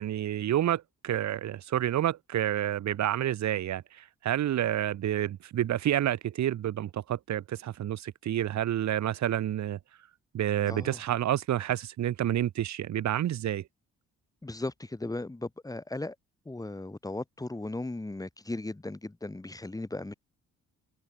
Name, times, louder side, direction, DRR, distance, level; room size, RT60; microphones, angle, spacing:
voice 1, 0.0-9.8 10.3-13.6, right 12 dB, 65° right, 1.6 m, -29 dB
voice 2, 10.7-11.0 14.4-16.1 16.5-20.1, left 2 dB, 10° left, 2.6 m, -37 dB
cardioid pair, 90°, 30 cm